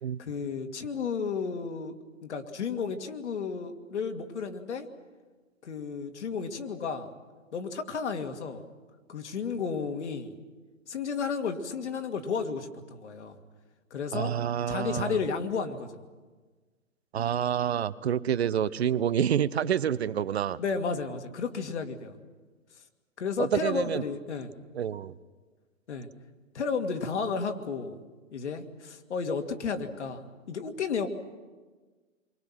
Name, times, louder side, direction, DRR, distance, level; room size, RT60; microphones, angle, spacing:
voice 1, 0.2-1.9 2.2-4.9 5.6-7.1 7.5-8.6 9.1-10.4 10.9-13.4 13.9-14.3 14.7-16.0 20.6-22.2 23.2-24.5 25.9-26.1 26.5-28.0 28.3-31.1, left 5 dB, 60° left, 6 dB, 2.3 m, -32 dB
voice 2, 14.1-15.2 17.1-20.6 23.4-24.0 24.7-25.1, right 9 dB, 55° right, 16 dB, 0.8 m, -28 dB
29.0 x 23.5 x 6.0 m, 1.4 s
figure-of-eight pair, 120°, 39 cm